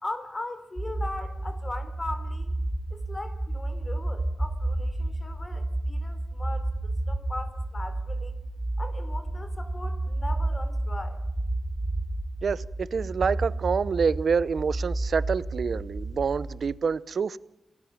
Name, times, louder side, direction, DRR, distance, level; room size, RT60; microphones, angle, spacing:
voice 1, 0.0-2.6 2.9-8.3 8.8-11.2, left 2 dB, 30° left, 3.6 m, -39 dB
sound 1, 0.8-16.7, right 2 dB, 15° right, 4.6 m, -31 dB
voice 2, 12.4-17.4, right 6 dB, 65° right, 0.8 m, -27 dB
27.5 x 18.5 x 7.4 m
wide cardioid pair, 110°, 0 cm